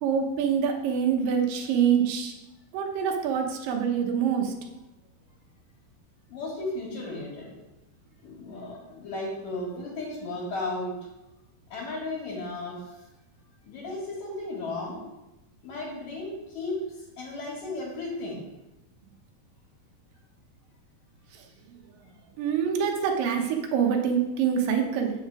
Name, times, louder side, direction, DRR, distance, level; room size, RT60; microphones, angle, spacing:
voice 1, 0.0-2.3 2.7-4.5 22.4-25.1, right 7 dB, 70° right, 3 dB, 2.4 m, -25 dB
voice 2, 6.3-7.5 8.2-11.0 11.7-12.8 13.6-15.0 15.6-16.9 17.2-18.4, left 2 dB, 60° left, -5 dB, 3.3 m, -34 dB
8.6 x 6.5 x 4.8 m, 0.95 s
omnidirectional pair, 4.6 m